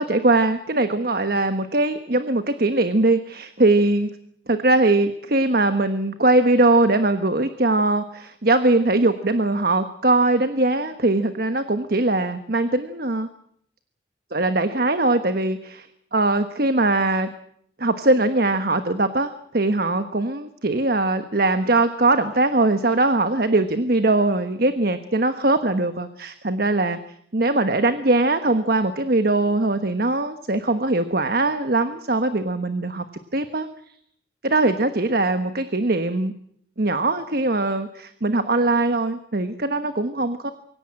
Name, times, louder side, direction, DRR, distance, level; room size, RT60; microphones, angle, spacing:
voice 1, 0.0-4.1 4.5-13.3 14.3-17.3 17.8-27.0 27.3-33.0 33.3-33.7 34.4-36.3 36.8-40.5, right 2 dB, 50° right, 9 dB, 1.2 m, -21 dB
24.5 x 17.0 x 8.8 m, 0.68 s
head